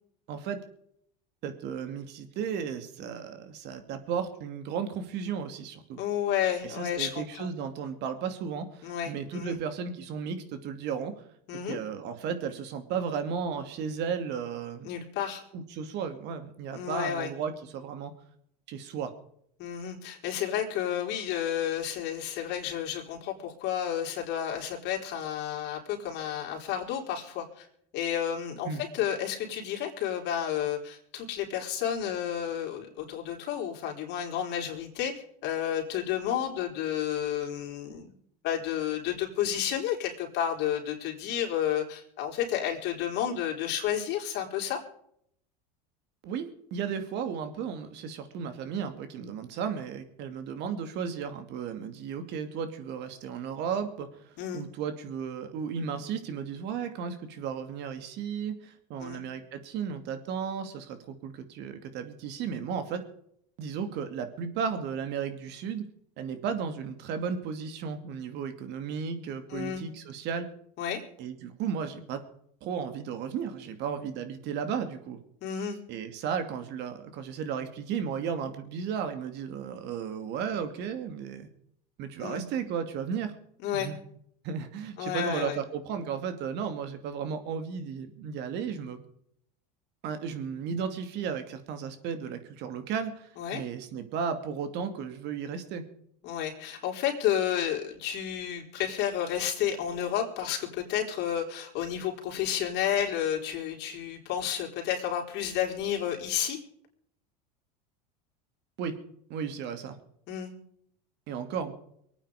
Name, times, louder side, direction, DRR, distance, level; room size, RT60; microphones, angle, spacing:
voice 1, 0.3-0.6 1.4-6.0 6.6-11.2 11.7-14.9 15.5-18.1 18.7-19.1 28.6-28.8 46.2-46.5 46.7-54.2 54.5-63.0 63.6-65.8 66.2-70.5 71.2-72.2 72.6-75.2 75.9-81.5 82.0-83.3 83.7-84.0 84.4-89.0 90.0-95.8 108.8-109.0 109.3-110.0 111.3-111.7, right 7 dB, 55° right, 8 dB, 2.5 m, -34 dB
voice 2, 6.0-7.5 8.8-9.6 11.5-11.8 14.8-15.4 16.7-17.3 19.6-27.7 27.9-35.1 35.4-38.1 38.4-44.8 54.4-54.7 59.0-59.2 69.5-69.8 70.8-71.0 75.4-75.8 82.2-82.5 83.6-83.9 85.0-85.6 93.4-93.6 96.2-106.6 110.3-110.5, left 10 dB, 55° left, 2 dB, 4.0 m, -31 dB
24.0 x 9.1 x 5.0 m, 0.69 s
supercardioid pair, 110°, 21 cm